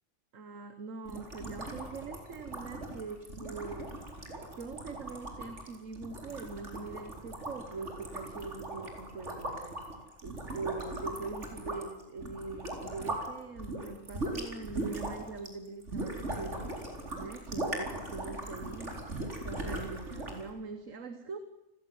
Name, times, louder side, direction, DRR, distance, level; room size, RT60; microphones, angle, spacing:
voice 1, 0.3-3.9 4.4-9.7 10.2-16.8 17.2-19.0 19.4-21.4, right 4 dB, 90° right, 10 dB, 1.7 m, -42 dB
sound 1, 1.0-13.3 13.6-20.5, right 1 dB, 65° right, 4.6 m, -39 dB
29.0 x 16.0 x 9.5 m, 1.0 s
omnidirectional pair, 1.3 m